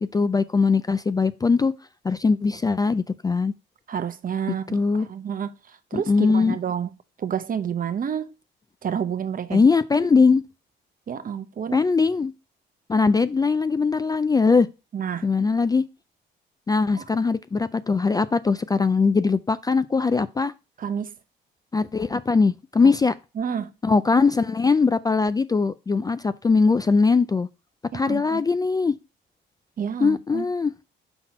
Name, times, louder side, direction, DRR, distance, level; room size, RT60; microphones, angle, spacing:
voice 1, 0.0-1.7 2.0-3.5 4.7-5.1 5.9-6.6 9.5-10.4 11.7-12.3 12.9-14.7 15.2-15.8 16.7-20.5 21.7-23.1 23.8-27.5 27.9-28.9 30.0-30.7, left 4 dB, 20° left, 0.3 m, -21 dB
voice 2, 3.9-6.9 7.2-8.3 8.8-9.7 10.0-10.1 11.1-11.8 14.9-15.3 17.0-17.1 20.8-21.1 22.8-22.9 23.4-23.7 27.9-28.4 29.8-30.5, right 8 dB, 45° right, 0.8 m, -29 dB
6.0 x 4.0 x 4.2 m
cardioid pair, 90°, 20 cm